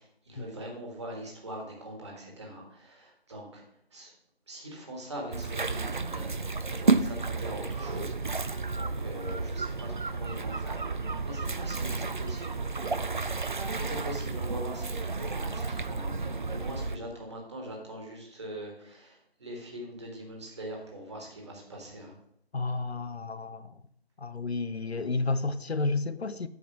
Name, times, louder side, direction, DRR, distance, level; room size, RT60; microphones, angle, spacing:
voice 1, 0.0-3.6 3.9-4.1 4.5-10.9 11.2-12.6 13.3-22.2, right 1 dB, 25° right, 1.8 m, -42 dB
sound 1, 5.3-17.0, right 3 dB, 50° right, 0.5 m, -31 dB
voice 2, 22.5-23.8 24.2-26.5, left 3 dB, 80° left, 0.7 m, -31 dB
7.8 x 4.8 x 6.0 m
figure-of-eight pair, 160°, 31 cm